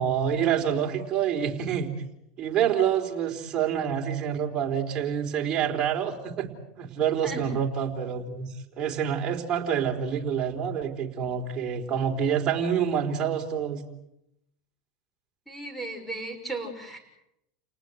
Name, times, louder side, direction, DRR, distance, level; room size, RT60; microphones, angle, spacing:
voice 1, 0.0-1.9 2.4-6.5 6.8-8.5 8.8-13.8, right 8 dB, 30° right, 0 dB, 4.2 m, -27 dB
voice 2, 15.5-17.0, right 2 dB, 5° left, 6 dB, 6.5 m, -35 dB
30.0 x 19.0 x 8.1 m, 0.83 s
hypercardioid pair, 110°, 3 cm